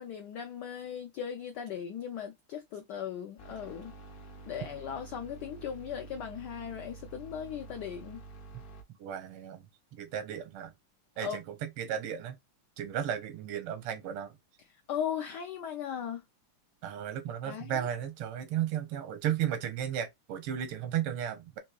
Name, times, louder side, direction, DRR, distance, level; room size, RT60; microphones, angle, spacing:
voice 1, 0.0-3.9 4.5-8.2 11.2-11.4 14.7-16.2 17.4-17.9, left 8 dB, 85° left, 0.9 m, -38 dB
sound 1, 3.4-8.8, right 3 dB, 55° left, 0.9 m, -49 dB
voice 2, 9.0-9.6 9.9-10.7 11.2-12.4 12.8-14.4 16.8-21.6, right 10 dB, 90° right, 1.7 m, -34 dB
4.5 x 2.8 x 2.2 m
omnidirectional pair, 2.4 m